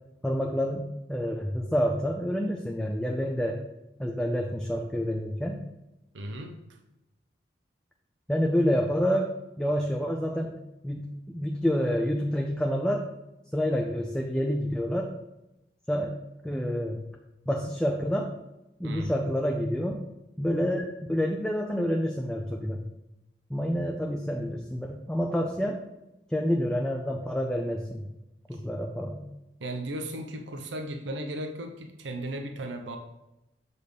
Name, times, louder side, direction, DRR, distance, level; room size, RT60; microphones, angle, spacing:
voice 1, 0.2-3.6 4.0-5.6 8.3-9.3 9.6-10.6 10.8-13.1 13.5-15.1 15.9-16.1 16.4-17.0 17.5-18.3 18.8-20.0 20.4-22.8 23.5-25.8 26.3-28.0 28.5-29.2, equal, 5° left, 1 dB, 0.4 m, -28 dB
voice 2, 6.1-6.8 18.8-19.1 29.6-33.0, right 1 dB, 85° right, 5 dB, 0.7 m, -36 dB
7.0 x 4.2 x 5.0 m, 0.95 s
head